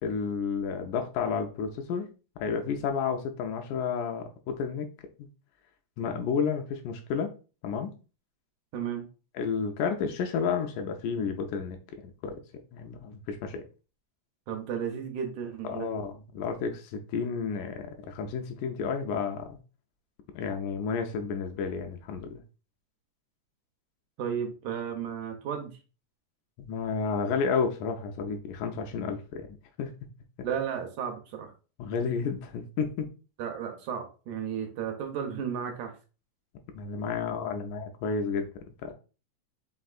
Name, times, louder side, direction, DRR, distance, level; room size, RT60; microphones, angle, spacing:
voice 1, 0.0-2.1 2.4-4.9 5.2-5.3 6.0-7.3 7.6-7.9 9.3-11.8 12.2-12.4 12.7-13.6 15.6-19.6 20.3-22.4 26.6-29.5 29.8-29.9 31.8-33.1 36.7-38.5 38.8-38.9, left 5 dB, 80° left, 5 dB, 1.9 m, -31 dB
voice 2, 8.7-9.1 14.5-15.9 24.2-25.7 30.4-31.5 33.4-35.9, right 8 dB, 75° right, 4 dB, 2.0 m, -33 dB
5.4 x 3.4 x 2.4 m, 0.34 s
omnidirectional pair, 3.8 m